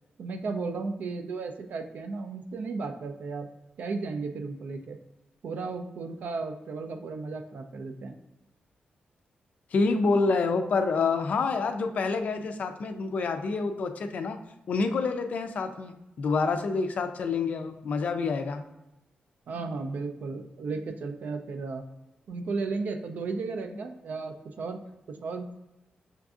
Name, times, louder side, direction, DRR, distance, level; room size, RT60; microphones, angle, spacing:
voice 1, 0.2-3.5 3.8-5.0 5.4-8.2 19.5-21.8 22.3-24.8 25.1-25.6, right 4 dB, 65° right, 6 dB, 0.4 m, -34 dB
voice 2, 9.7-14.4 14.7-18.6, left 4 dB, 55° left, 7 dB, 0.3 m, -27 dB
5.7 x 2.5 x 2.4 m, 0.94 s
wide cardioid pair, 175°, 3 cm